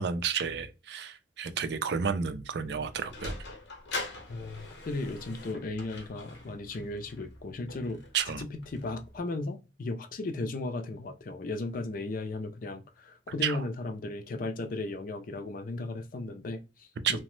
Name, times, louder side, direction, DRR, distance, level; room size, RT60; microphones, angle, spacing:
voice 1, 0.0-3.3 8.1-8.4 13.4-13.6 17.0-17.2, right 6 dB, 65° right, 0.4 m, -31 dB
Sliding door, 2.6-9.2, left 2 dB, 80° left, 0.8 m, -43 dB
voice 2, 4.3-8.0 8.3-17.2, left 2 dB, 55° left, 0.4 m, -36 dB
2.9 x 2.0 x 3.1 m
head